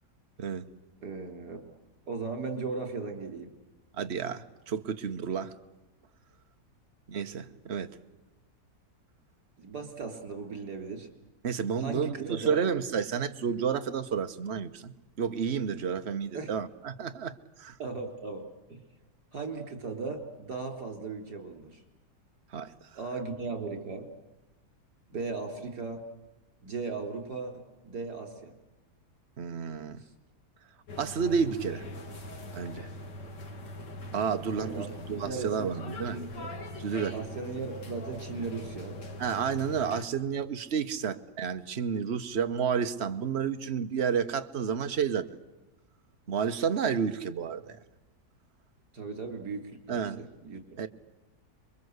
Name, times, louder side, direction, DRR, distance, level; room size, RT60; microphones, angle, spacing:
voice 1, 1.0-1.7 2.1-3.5 9.6-11.1 11.8-12.6 16.3-16.5 17.8-18.8 19.3-21.8 23.0-24.1 25.1-26.0 26.6-28.5 30.0-30.1 34.6-34.9 35.2-35.7 36.1-36.5 37.1-39.0 48.9-50.6, right 4 dB, 65° right, 4.4 m, -37 dB
voice 2, 4.0-5.6 7.1-7.9 11.4-17.8 22.5-22.9 29.4-30.0 31.0-31.9 32.5-32.9 34.1-36.2 36.8-37.1 39.2-45.3 46.3-47.8 49.9-50.2 50.8-50.9, right 7 dB, 45° right, 1.3 m, -31 dB
sound 1, 30.9-40.0, left 1 dB, 90° left, 3.0 m, -42 dB
27.5 x 23.0 x 8.1 m
omnidirectional pair, 1.8 m